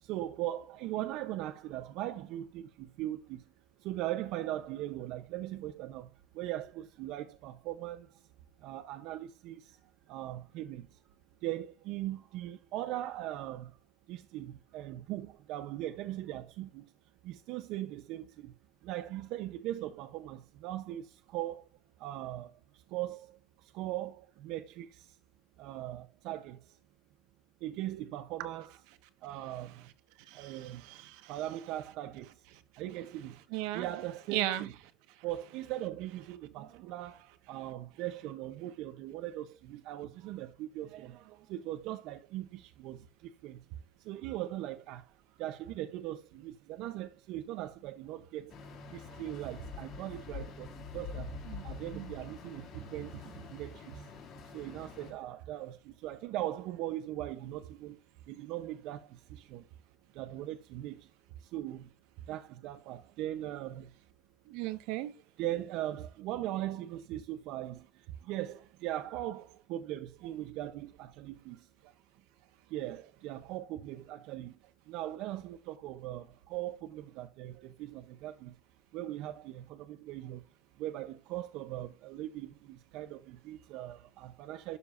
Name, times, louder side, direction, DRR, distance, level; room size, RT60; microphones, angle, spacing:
voice 1, 0.0-3.4 3.8-6.1 6.3-8.1 8.6-9.7 10.1-10.9 11.4-13.7 14.1-16.9 17.2-18.5 18.8-21.6 22.0-22.5 22.9-23.4 23.7-25.1 25.6-26.6 27.6-28.8 29.2-29.8 30.3-30.8 31.3-32.3 32.8-33.4 33.7-34.7 35.2-43.0 43.4-43.6 44.1-45.0 45.4-48.5 48.9-51.3 51.6-53.1 53.5-53.9 54.5-58.0 58.3-59.6 60.2-61.1 61.5-61.9 62.3-63.9 65.4-67.9 68.2-71.6 72.7-74.5 74.9-78.5 78.9-80.4 80.8-84.8, right 14 dB, 60° right, 0.7 m, -39 dB
voice 2, 30.3-31.3 33.5-33.9 34.3-34.7 51.5-51.6 51.9-52.1 64.5-65.1, right 15 dB, 80° right, 1.4 m, -36 dB
sound 1, 48.5-55.1, left 5 dB, 45° left, 2.4 m, -46 dB
12.0 x 6.8 x 2.6 m
cardioid pair, 165°, 0 cm